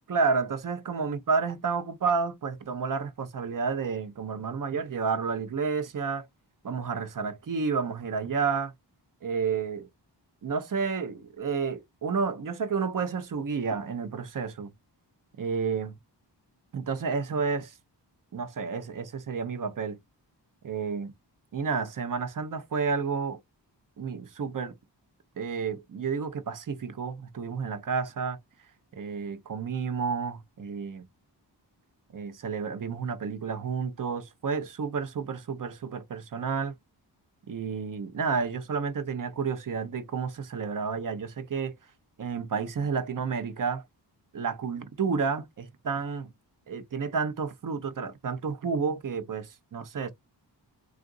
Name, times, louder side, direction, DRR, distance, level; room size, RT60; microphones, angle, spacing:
voice 1, 0.1-6.3 6.6-8.7 9.2-9.9 10.4-14.7 15.4-15.9 16.7-17.7 18.3-20.0 20.6-21.1 21.5-23.4 24.0-24.7 25.4-28.4 28.9-31.0 32.1-36.8 37.5-41.7 42.2-43.8 44.3-46.3 46.7-50.1, right 5 dB, 45° right, 0.7 m, -30 dB
3.7 x 2.5 x 2.4 m
wide cardioid pair, 160°, 43 cm